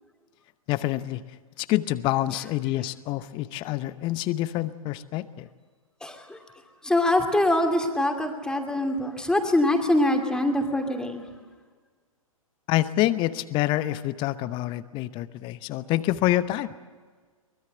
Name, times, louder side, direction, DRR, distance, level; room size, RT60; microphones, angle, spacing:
voice 1, 0.7-1.2 1.6-5.5 12.7-16.7, left 15 dB, 25° left, 15 dB, 0.8 m, -27 dB
voice 2, 6.0-6.4 6.8-11.2, left 1 dB, 5° left, 4 dB, 2.6 m, -24 dB
24.0 x 21.0 x 7.9 m, 1.5 s
figure-of-eight pair, 115°, 18 cm